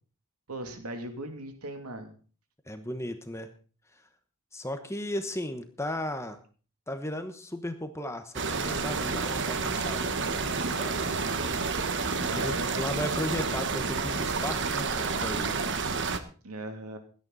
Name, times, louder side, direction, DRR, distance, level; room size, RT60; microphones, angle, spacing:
voice 1, 0.5-2.1 12.2-12.7 16.4-17.0, right 1 dB, 90° right, 5 dB, 2.7 m, -38 dB
voice 2, 2.7-3.5 4.5-6.4 6.9-11.3 12.4-15.6, left 1 dB, 10° left, 8 dB, 1.1 m, -36 dB
sound 1, 8.3-16.2, right 4 dB, 55° right, 1.3 m, -30 dB
17.5 x 12.0 x 4.1 m, 0.39 s
head